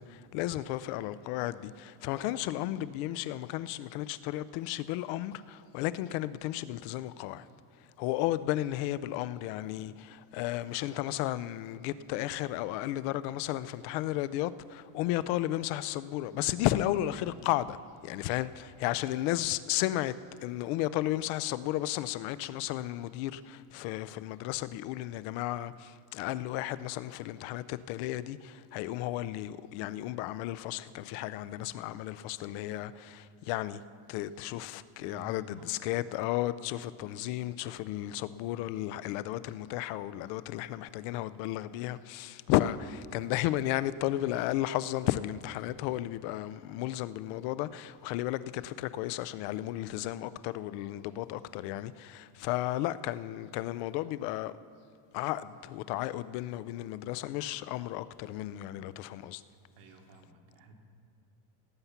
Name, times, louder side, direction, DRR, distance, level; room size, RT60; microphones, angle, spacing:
voice 1, 0.0-7.5 7.8-20.2 20.4-33.8 34.1-54.5 55.1-59.4, left 14 dB, 80° left, 0.6 m, -33 dB
voice 2, 35.0-36.1 59.8-60.7, right 2 dB, 80° right, 1.8 m, -53 dB
18.0 x 8.1 x 5.8 m
cardioid pair, 140°, 45 cm